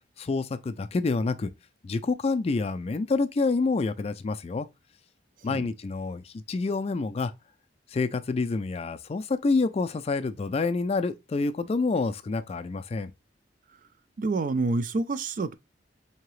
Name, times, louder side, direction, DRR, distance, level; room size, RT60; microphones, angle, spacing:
voice 1, 0.2-1.5 1.8-4.7 5.4-7.3 7.9-13.1, left 3 dB, 35° left, 0.3 m, -27 dB
voice 2, 14.2-15.5, right 3 dB, 45° right, 0.4 m, -27 dB
4.5 x 2.8 x 3.1 m
head